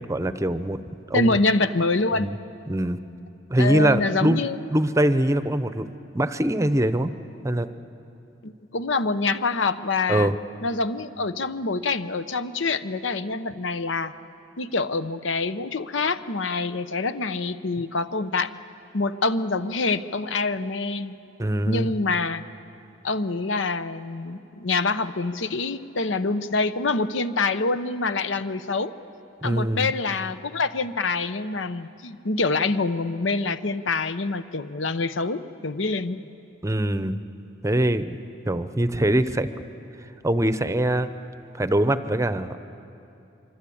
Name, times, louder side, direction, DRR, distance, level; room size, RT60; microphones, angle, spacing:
voice 1, 0.1-1.4 2.2-2.3 2.7-3.0 3.5-4.4 4.7-5.9 6.1-7.1 7.4-7.7 10.1-10.4 21.4-21.9 29.4-29.9 36.6-37.2 37.6-38.2 38.5-39.5 40.2-41.1 41.6-42.6, right 1 dB, 15° right, 12 dB, 0.7 m, -23 dB
voice 2, 1.1-2.3 3.6-4.6 8.4-10.3 10.6-14.1 14.6-18.5 18.9-21.1 21.7-22.4 23.0-28.9 29.4-36.2, left 3 dB, 80° left, 12 dB, 0.9 m, -26 dB
25.5 x 24.5 x 8.6 m, 2.7 s
head